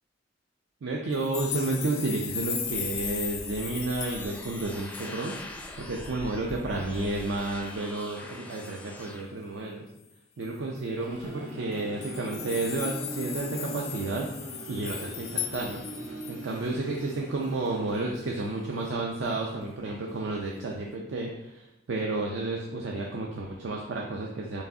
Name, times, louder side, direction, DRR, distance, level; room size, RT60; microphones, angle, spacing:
voice 1, 0.8-5.3 5.8-9.9 10.4-14.3 14.7-15.8 16.3-24.6, right 2 dB, 70° right, -1 dB, 0.4 m, -31 dB
sound 1, 1.1-5.6 6.0-6.1 6.5-6.6 6.9-7.4 8.5-8.7 10.4-10.5 10.8-10.9 11.7-16.6 17.1-17.2, left 8 dB, 85° left, 0.5 m, -37 dB
sound 2, 1.8-9.2, left 1 dB, 10° left, 0.4 m, -44 dB
sound 3, 10.6-18.3, right 1 dB, 85° right, 0.9 m, -41 dB
4.6 x 3.1 x 2.7 m, 0.90 s
head